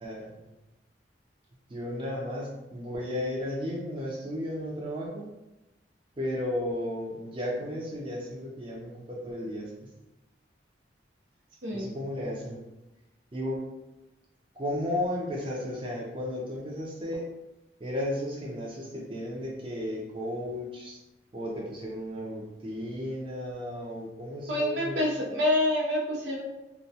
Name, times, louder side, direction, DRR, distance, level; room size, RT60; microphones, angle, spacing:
voice 1, 0.0-0.5 1.7-5.3 6.2-9.7 11.7-12.7 13.3-13.6 14.6-17.3 17.8-21.0 21.3-25.1, left 1 dB, 30° right, -3 dB, 0.5 m, -34 dB
voice 2, 11.6-11.9 24.5-26.4, left 1 dB, 80° right, -2 dB, 0.6 m, -27 dB
2.2 x 2.2 x 2.7 m, 0.99 s
head